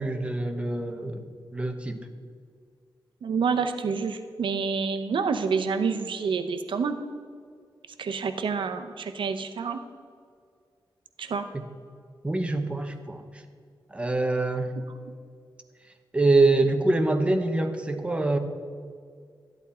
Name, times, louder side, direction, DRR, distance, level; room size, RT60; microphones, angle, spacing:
voice 1, 0.0-2.1 12.2-13.4 13.9-14.7 16.1-18.4, right 2 dB, 15° right, 6 dB, 0.9 m, -25 dB
voice 2, 3.2-7.0 8.0-9.8 11.2-11.5, right 5 dB, 80° right, 7 dB, 0.7 m, -28 dB
13.0 x 11.0 x 4.3 m, 2.1 s
wide cardioid pair, 120°, 8 cm